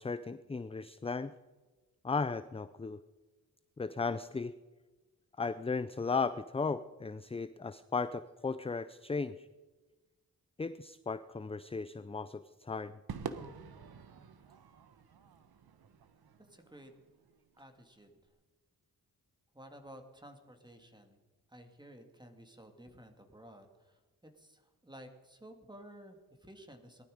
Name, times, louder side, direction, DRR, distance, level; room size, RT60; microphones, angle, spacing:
voice 1, 0.0-1.3 2.0-3.0 3.8-4.5 5.4-9.5 10.6-13.0, left 4 dB, 15° left, 13 dB, 0.4 m, -36 dB
Crowd / Fireworks, 13.1-17.6, right 6 dB, 80° right, 1.2 m, -47 dB
voice 2, 16.5-16.9 17.6-18.2 19.5-21.2 21.5-24.0 24.4-27.0, equal, 10° right, 5 dB, 2.3 m, -54 dB
19.5 x 12.5 x 5.1 m, 1.2 s
cardioid pair, 75°, 37 cm